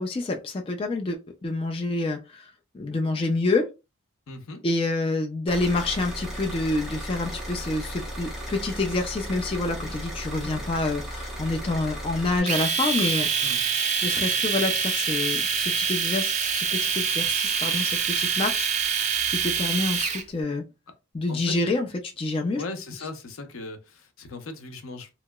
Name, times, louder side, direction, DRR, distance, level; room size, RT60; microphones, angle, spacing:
voice 1, 0.0-2.5 2.7-3.7 4.6-13.3 14.0-18.7 19.3-20.6 21.1-21.9 22.2-22.6, left 2 dB, 25° left, 0.3 m, -27 dB
voice 2, 4.3-4.6 13.4-13.6 21.3-21.6 22.5-25.1, left 3 dB, 85° left, 0.6 m, -38 dB
sound 1, 5.5-12.4, equal, 5° right, 0.7 m, -35 dB
Domestic sounds home sounds, 12.5-20.2, right 6 dB, 35° right, 0.5 m, -25 dB
2.9 x 2.9 x 2.2 m
head